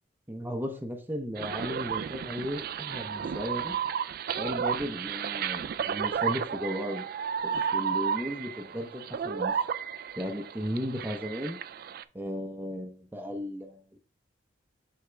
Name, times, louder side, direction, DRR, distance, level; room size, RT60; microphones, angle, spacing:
voice 1, 0.3-3.7 4.4-7.1 7.7-9.6 10.2-11.6 12.1-14.0, equal, 10° right, 5 dB, 0.7 m, -35 dB
sound 1, 1.4-12.0, right 7 dB, 55° right, 0.3 m, -33 dB
7.9 x 3.6 x 3.4 m, 0.40 s
head